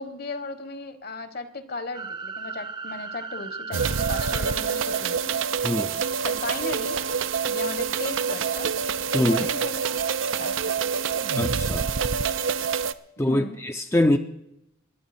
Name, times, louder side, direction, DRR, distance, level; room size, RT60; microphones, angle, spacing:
voice 1, 0.0-5.4 6.2-7.0 7.5-8.7 9.2-10.0 10.4-10.7 13.2-13.6, left 3 dB, 50° left, 12 dB, 1.2 m, -36 dB
sound 1, 1.9-5.7, right 4 dB, 25° right, 0.7 m, -37 dB
sound 2, 3.7-12.9, right 6 dB, 80° right, 0.6 m, -26 dB
voice 2, 5.6-6.0 9.1-9.5 11.4-11.9 13.2-14.2, left 1 dB, 15° left, 6 dB, 0.5 m, -23 dB
23.0 x 9.3 x 4.3 m, 0.79 s
head